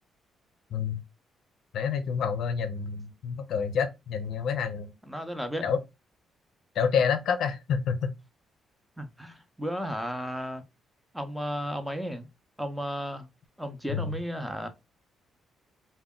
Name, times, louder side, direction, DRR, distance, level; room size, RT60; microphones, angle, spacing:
voice 1, 0.7-1.0 1.7-4.9 5.6-5.8 6.7-8.1 13.9-14.2, left 6 dB, 70° left, 0.5 m, -28 dB
voice 2, 5.1-5.7 9.0-10.6 11.1-12.3 12.6-13.3 13.6-14.7, equal, 5° right, 0.7 m, -34 dB
2.1 x 2.1 x 3.6 m
cardioid pair, 75°, 0 cm